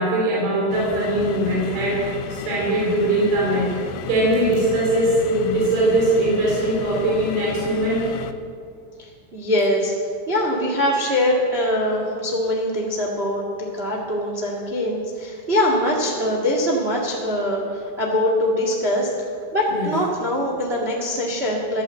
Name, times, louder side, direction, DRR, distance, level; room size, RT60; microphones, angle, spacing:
voice 1, 0.0-3.7 4.1-8.0 19.7-19.9, right 1 dB, 60° right, -5 dB, 5.1 m, -21 dB
sound 1, 0.7-8.3, left 7 dB, 80° left, 2.3 m, -33 dB
voice 2, 9.0-9.9 10.3-19.3 19.5-21.8, left 1 dB, 80° right, -1 dB, 0.5 m, -23 dB
14.5 x 11.0 x 7.9 m, 2.2 s
omnidirectional pair, 5.1 m